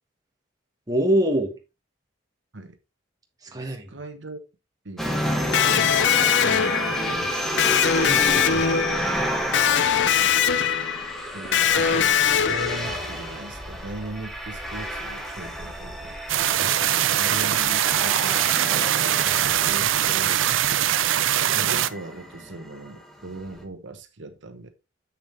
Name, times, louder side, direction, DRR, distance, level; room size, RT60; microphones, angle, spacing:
voice 1, 0.9-1.6 3.4-3.9 8.0-8.7 16.6-17.0 19.2-19.4, right 1 dB, 20° right, 1.5 m, -26 dB
voice 2, 3.6-4.4 4.8-7.9 11.3-16.2 17.1-18.8 19.4-20.4 21.5-24.7, right 2 dB, 70° right, 1.2 m, -39 dB
sound 1, 5.0-23.6, equal, ahead, 1.4 m, -31 dB
Electric guitar, 5.5-13.2, left 8 dB, 65° left, 0.5 m, -22 dB
sound 2, 16.3-21.9, right 11 dB, 85° right, 0.5 m, -22 dB
7.4 x 6.8 x 3.3 m
head